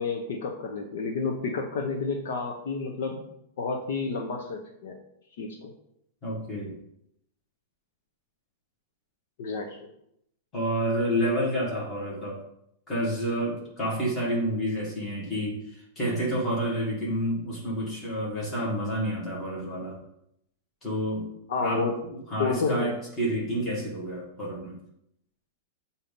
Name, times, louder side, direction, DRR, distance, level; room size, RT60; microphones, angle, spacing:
voice 1, 0.0-3.3 3.6-5.0 5.4-5.7 9.4-9.9 21.5-21.9 22.4-22.9, left 4 dB, 55° left, 3 dB, 0.8 m, -30 dB
voice 2, 6.2-6.7 10.5-12.4 12.9-15.6 16.0-20.0 20.8-21.3 21.6-24.8, equal, 15° left, -5 dB, 1.8 m, -29 dB
7.2 x 2.8 x 5.2 m, 0.76 s
supercardioid pair, 175°, 0 cm